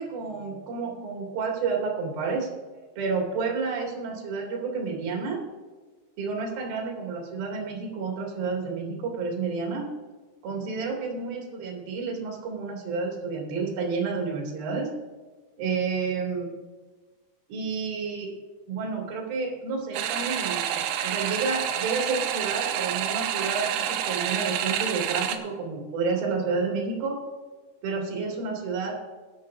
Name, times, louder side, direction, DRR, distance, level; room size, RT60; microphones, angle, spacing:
voice 1, 0.0-2.5 3.0-5.4 6.2-9.9 10.4-14.9 15.6-16.5 17.5-18.3 18.7-27.2 27.8-29.0, right 4 dB, 55° right, -2 dB, 4.2 m, -30 dB
sound 1, 19.9-25.4, right 10 dB, 90° right, 3.4 m, -28 dB
20.5 x 10.5 x 2.7 m, 1.4 s
omnidirectional pair, 5.5 m